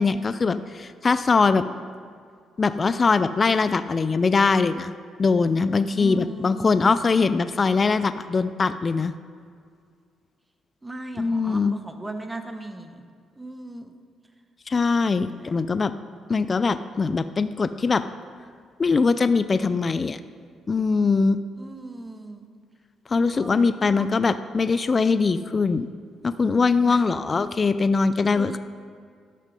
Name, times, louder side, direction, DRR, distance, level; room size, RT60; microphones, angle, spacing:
voice 1, 0.0-1.6 2.6-4.9 5.2-9.1 11.2-11.8 14.7-15.9 16.3-18.1 18.8-20.2 20.7-21.4 23.1-25.9 26.2-28.6, left 4 dB, 35° left, 13 dB, 0.4 m, -22 dB
voice 2, 5.9-7.0 10.8-13.0 13.4-13.9 15.2-15.5 21.6-22.5 23.3-24.1 26.9-27.0 28.3-28.6, right 2 dB, 15° right, 7 dB, 1.0 m, -37 dB
12.0 x 6.5 x 5.3 m, 2.1 s
cardioid pair, 90°, 0 cm